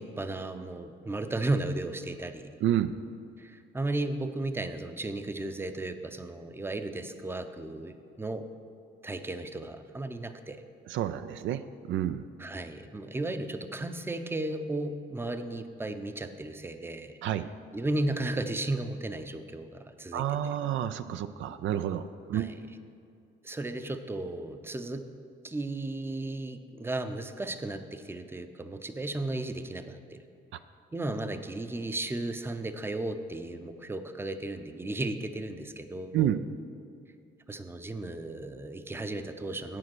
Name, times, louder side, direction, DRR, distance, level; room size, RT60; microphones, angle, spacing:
voice 1, 0.0-2.5 3.4-8.5 9.0-10.6 12.4-17.2 17.7-20.6 22.3-22.6 23.4-25.0 25.4-30.2 30.9-36.4 37.5-39.8, right 2 dB, 10° right, 9 dB, 0.6 m, -35 dB
voice 2, 2.6-2.9 10.9-11.6 11.9-12.2 17.2-17.5 20.1-22.0 22.3-22.5 36.1-36.4, right 11 dB, 75° right, 11 dB, 0.4 m, -29 dB
8.4 x 7.6 x 6.1 m, 2.4 s
cardioid pair, 90°, 20 cm